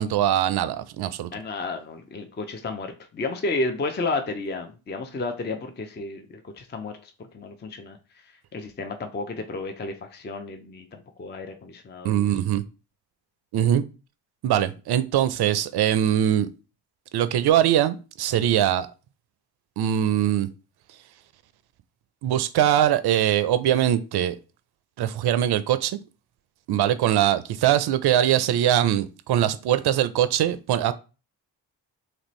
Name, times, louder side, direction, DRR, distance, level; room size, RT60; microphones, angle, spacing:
voice 1, 0.0-1.3 12.0-12.6 13.5-13.8 14.4-16.5 17.1-18.9 19.8-20.5 22.2-24.4 25.0-26.0 26.7-30.9, right 11 dB, 55° right, 0.5 m, -22 dB
voice 2, 1.3-8.0 8.5-12.3, left 3 dB, 20° left, 0.5 m, -32 dB
3.0 x 2.5 x 3.0 m
hypercardioid pair, 40°, 49 cm